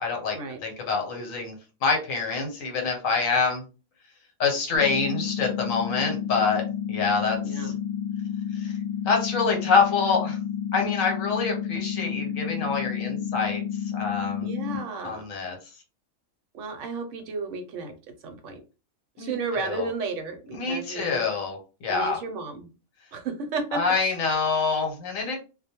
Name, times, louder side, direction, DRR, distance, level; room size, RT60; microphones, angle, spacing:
voice 1, 0.0-0.4 0.6-1.5 1.8-3.6 4.4-6.6 6.9-7.7 8.5-8.7 9.1-10.4 10.7-13.6 13.9-14.5 15.0-15.6 19.2-19.9 20.5-21.6 21.8-22.2 23.7-25.4, left 4 dB, 75° left, 2 dB, 1.2 m, -26 dB
sound 1, 4.7-14.8, left 8 dB, 15° left, 0.6 m, -31 dB
voice 2, 7.4-7.7 14.4-15.2 16.5-17.9 18.2-18.6 19.2-21.2 21.9-22.7 23.1-23.8, right 4 dB, 70° right, 5 dB, 0.9 m, -33 dB
2.2 x 2.1 x 2.8 m, 0.32 s
omnidirectional pair, 1.4 m